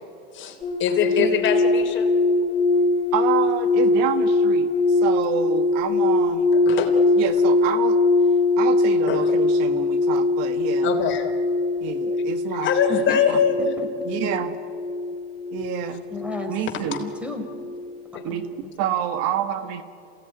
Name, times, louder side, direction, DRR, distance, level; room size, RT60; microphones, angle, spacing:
voice 1, 0.3-2.1 6.5-7.0 9.1-9.2 10.8-11.2 12.6-13.5, left 8 dB, 40° left, 4 dB, 3.5 m, -23 dB
sound 1, 0.6-17.9 18.2-18.6, left 2 dB, 15° left, 5.9 m, -22 dB
voice 2, 3.1-6.5 7.2-8.0 8.6-10.9 11.8-12.7 13.3-13.4 14.1-14.5 15.5-16.0 16.5-17.1 18.2-18.5 18.8-19.8, right 10 dB, 55° right, 9 dB, 1.7 m, -28 dB
voice 3, 12.9-13.9 16.1-16.6 17.0-17.4 18.6-18.7, left 2 dB, 5° right, 5 dB, 4.2 m, -32 dB
27.5 x 17.0 x 9.8 m, 2.7 s
supercardioid pair, 125°, 31 cm